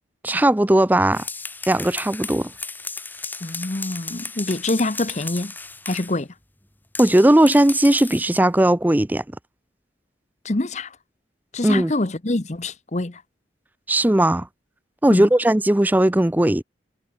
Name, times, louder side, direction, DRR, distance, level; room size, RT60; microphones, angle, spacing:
voice 1, 0.2-1.2 1.7-2.5 7.0-9.2 11.6-11.9 13.9-14.5 15.0-16.6, right 1 dB, 10° right, 0.4 m, -17 dB
sound 1, 1.0-6.2 6.9-8.3, left 3 dB, 10° left, 2.5 m, -35 dB
voice 2, 3.4-5.5 5.9-6.3 10.4-10.9 11.5-13.2 15.1-15.3, left 2 dB, 40° left, 0.9 m, -25 dB
head